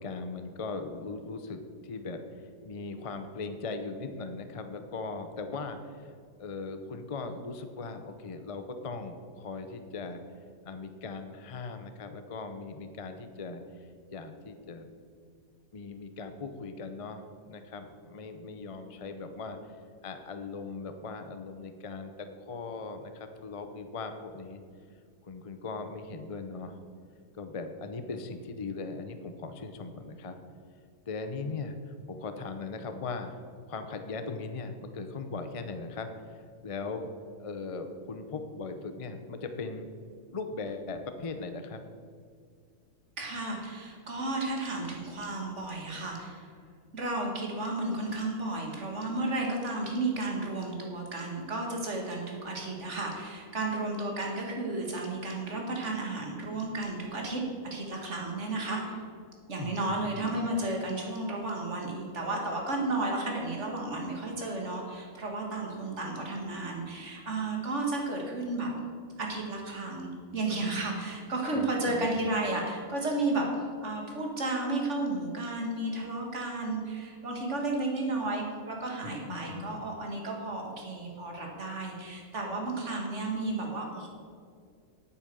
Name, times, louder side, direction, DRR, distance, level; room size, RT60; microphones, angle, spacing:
voice 1, 0.0-2.2 2.6-6.1 6.4-10.2 10.6-13.6 14.1-14.9 15.7-19.6 20.0-24.6 25.2-26.8 27.4-30.4 31.1-33.4 33.7-36.1 36.3-37.1 37.4-39.9 40.3-41.8 59.6-60.4 71.5-72.2 79.0-79.8, left 4 dB, 35° left, 7 dB, 0.5 m, -39 dB
voice 2, 43.2-46.5 46.9-59.0 59.5-68.7 69.2-73.5 73.8-84.1, right 2 dB, 55° right, 0 dB, 2.2 m, -33 dB
8.7 x 8.6 x 6.9 m, 2.1 s
omnidirectional pair, 1.5 m